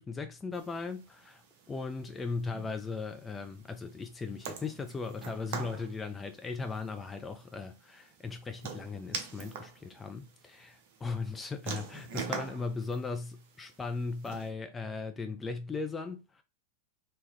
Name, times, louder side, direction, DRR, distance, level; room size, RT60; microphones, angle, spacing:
voice 1, 0.0-16.4, left 4 dB, 15° left, 0.4 m, -38 dB
sound 1, 0.5-14.5, right 6 dB, 45° right, 0.8 m, -45 dB
3.6 x 2.9 x 3.1 m
figure-of-eight pair, 90°, 0 cm